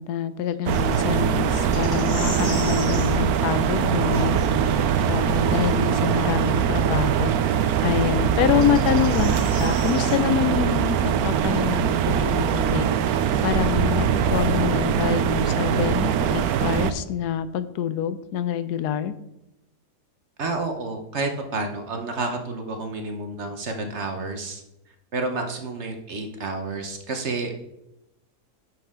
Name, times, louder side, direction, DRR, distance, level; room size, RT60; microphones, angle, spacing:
voice 1, 0.0-4.4 4.7-4.8 5.1-7.3 7.8-19.1, left 10 dB, 80° left, 13 dB, 1.1 m, -26 dB
Bird vocalization bird call bird song, 0.6-5.7, left 4 dB, 60° left, 4.3 m, -37 dB
sound 1, 0.7-16.9, right 8 dB, 75° right, 1.1 m, -22 dB
sound 2, 1.7-3.1 6.2-6.3 8.4-10.2, equal, 45° left, 3.4 m, -36 dB
voice 2, 20.4-24.6 25.1-27.6, right 3 dB, 50° right, 4 dB, 1.1 m, -30 dB
10.5 x 6.3 x 3.7 m, 0.89 s
omnidirectional pair, 1.7 m